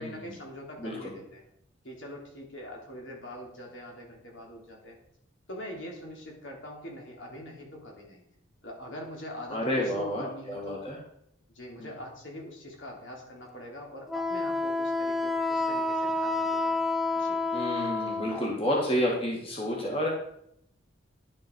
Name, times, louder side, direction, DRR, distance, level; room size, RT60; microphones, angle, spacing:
voice 1, 0.0-1.4 1.8-5.0 5.5-8.2 8.6-10.8 11.5-16.8 17.1-17.4, left 1 dB, 65° left, -1 dB, 3.4 m, -43 dB
voice 2, 0.8-1.1 9.5-11.0 17.5-20.1, equal, 25° left, -3 dB, 2.4 m, -30 dB
Wind instrument woodwind instrument, 14.1-18.5, left 2 dB, ahead, 0.5 m, -29 dB
11.5 x 8.6 x 4.8 m, 0.72 s
head